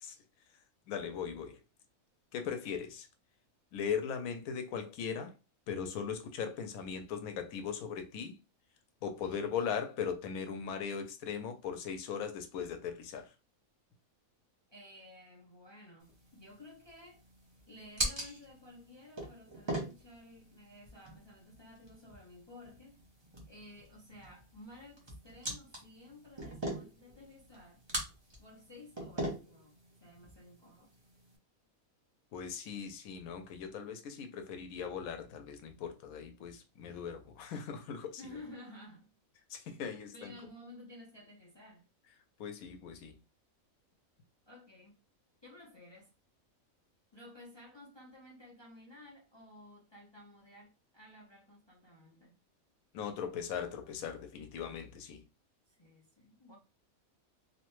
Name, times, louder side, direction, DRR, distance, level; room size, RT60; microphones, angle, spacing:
voice 1, 0.9-1.6 2.3-3.1 3.7-5.3 5.7-8.4 9.0-13.3 32.3-38.2 39.5-40.3 42.4-43.1 52.9-55.2, left 7 dB, 90° left, 1.1 m, -39 dB
voice 2, 14.7-17.2 17.7-23.0 23.5-27.8 28.4-30.9 38.2-39.1 39.7-39.9 40.1-41.9 44.5-45.0 45.4-46.1 47.1-52.4 55.7-56.6, left 1 dB, 40° left, 0.3 m, -54 dB
sound 1, 16.0-31.4, right 1 dB, 25° right, 0.6 m, -43 dB
2.9 x 2.1 x 3.0 m
omnidirectional pair, 1.5 m